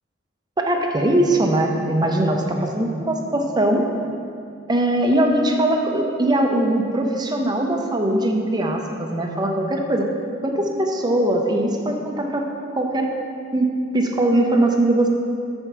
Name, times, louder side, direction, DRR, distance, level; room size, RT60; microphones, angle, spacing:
voice 1, 0.6-3.9 4.7-10.1 10.4-12.5 12.8-13.1 13.5-15.1, right 1 dB, 20° right, 2 dB, 0.6 m, -21 dB
6.8 x 4.3 x 6.0 m, 2.5 s
head